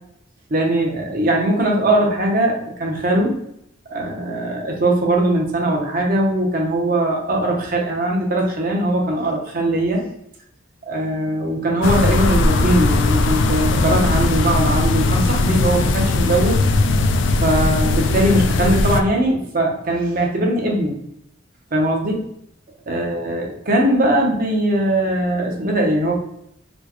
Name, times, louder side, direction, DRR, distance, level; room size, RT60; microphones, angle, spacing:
voice 1, 0.5-3.4 3.9-10.1 10.8-16.6 17.4-21.0 21.7-22.2 22.9-26.1, right 1 dB, 45° right, -1 dB, 0.8 m, -20 dB
sound 1, 11.8-19.0, left 2 dB, 60° left, 0.3 m, -18 dB
4.3 x 2.2 x 3.0 m, 0.75 s
head